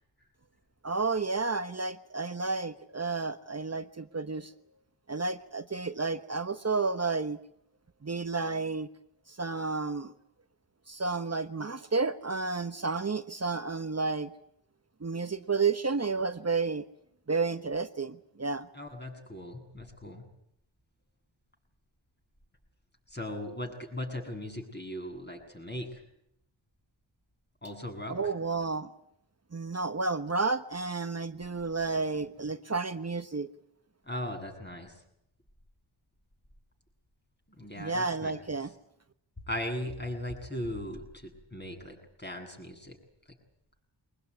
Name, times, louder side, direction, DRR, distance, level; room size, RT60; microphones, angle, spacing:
voice 1, 0.8-4.5 5.1-7.4 8.0-8.9 9.3-10.1 10.9-14.3 15.0-16.8 17.3-18.7 28.1-28.9 29.5-33.5 37.8-38.7, right 4 dB, 35° right, 11 dB, 1.2 m, -31 dB
voice 2, 18.7-20.2 23.1-25.9 27.6-28.2 34.0-34.9 37.5-38.3 39.5-43.0, left 1 dB, 20° left, 2 dB, 7.9 m, -38 dB
23.5 x 20.0 x 9.7 m, 0.76 s
cardioid pair, 55°, 46 cm